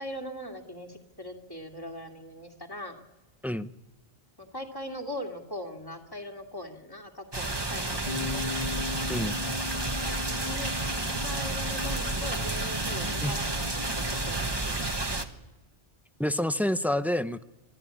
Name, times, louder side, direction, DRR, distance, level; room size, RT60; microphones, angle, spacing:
voice 1, 0.0-3.0 4.4-8.4 10.3-10.7 11.0-15.0, left 1 dB, 20° left, 2 dB, 2.5 m, -40 dB
sound 1, 7.3-15.2, right 2 dB, 25° right, 1.3 m, -31 dB
Bass guitar, 8.1-14.3, left 5 dB, 45° left, 2.9 m, -39 dB
voice 2, 16.2-17.4, left 1 dB, ahead, 12 dB, 0.5 m, -28 dB
25.5 x 13.5 x 9.8 m, 1.1 s
omnidirectional pair, 1.0 m